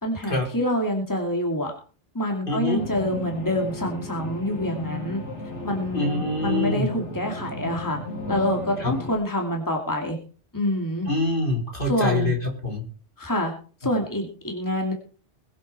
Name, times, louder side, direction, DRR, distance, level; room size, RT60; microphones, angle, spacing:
voice 1, 0.0-1.7 2.1-5.2 5.6-8.0 8.3-10.2 10.5-11.1 11.9-12.3 13.2-13.5 13.8-14.9, left 1 dB, 15° left, 2 dB, 2.5 m, -26 dB
voice 2, 2.5-2.8 5.9-6.9 8.8-8.9 11.1-12.8, left 2 dB, 45° left, 1 dB, 4.1 m, -25 dB
sound 1, 2.8-9.1, left 2 dB, 70° left, 3.6 m, -34 dB
22.0 x 8.3 x 4.3 m, 0.38 s
omnidirectional pair, 1.2 m